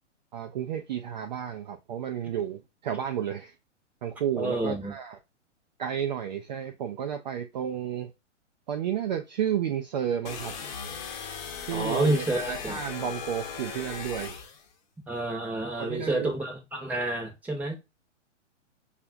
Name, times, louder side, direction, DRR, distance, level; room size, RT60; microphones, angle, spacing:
voice 1, 0.3-3.5 4.0-5.2 5.8-8.1 8.7-10.6 11.7-14.4 15.8-16.3, right 9 dB, 40° right, 0.4 m, -32 dB
voice 2, 4.4-4.9 11.7-12.8 15.1-17.7, right 1 dB, 5° right, 0.8 m, -29 dB
sound 1, 10.2-14.7, left 6 dB, 40° left, 1.0 m, -38 dB
5.5 x 2.4 x 2.5 m
figure-of-eight pair, 115°, 37 cm